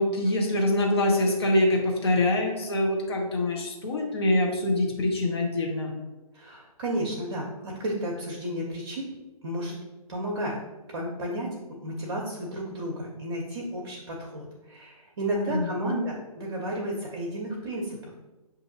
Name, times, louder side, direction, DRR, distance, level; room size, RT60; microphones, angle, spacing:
voice 1, 0.0-6.0 15.5-16.0, left 1 dB, 45° left, 0 dB, 0.8 m, -25 dB
voice 2, 6.3-9.1 9.4-9.7 10.1-10.6 10.9-11.5 11.8-18.2, right 1 dB, 45° right, -3 dB, 0.7 m, -32 dB
6.8 x 2.6 x 2.7 m, 1.1 s
figure-of-eight pair, 135°, 19 cm